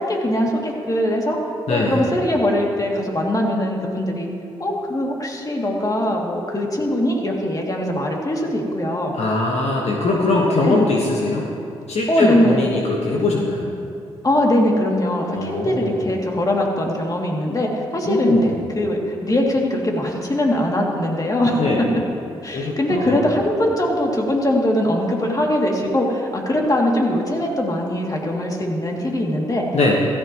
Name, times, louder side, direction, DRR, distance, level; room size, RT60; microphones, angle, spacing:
voice 1, 0.0-1.4 1.7-4.3 4.6-9.1 10.6-10.8 12.1-12.6 14.2-21.6 22.4-29.6, left 1 dB, 30° left, -1 dB, 2.8 m, -21 dB
voice 2, 1.7-2.0 9.1-11.5 11.9-13.7 15.3-15.9 18.0-18.6 21.6-21.9 22.5-23.2 29.7-29.9, left 2 dB, 65° left, -3 dB, 1.6 m, -21 dB
16.0 x 14.5 x 3.2 m, 2.5 s
supercardioid pair, 45°, 12 cm